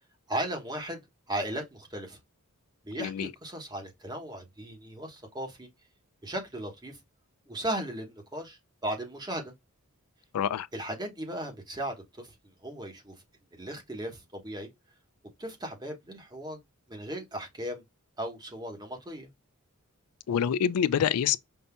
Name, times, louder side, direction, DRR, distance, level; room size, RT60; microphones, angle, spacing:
voice 1, 0.3-1.0 1.3-2.2 2.8-5.7 6.2-7.0 7.5-9.5 10.7-12.3 12.6-13.2 13.6-14.7 15.4-16.6 16.9-17.8 18.2-19.3, right 1 dB, 20° right, 1.2 m, -36 dB
voice 2, 3.0-3.3 10.3-10.7 20.3-21.4, left 8 dB, 90° left, 0.3 m, -26 dB
5.5 x 2.6 x 2.2 m
head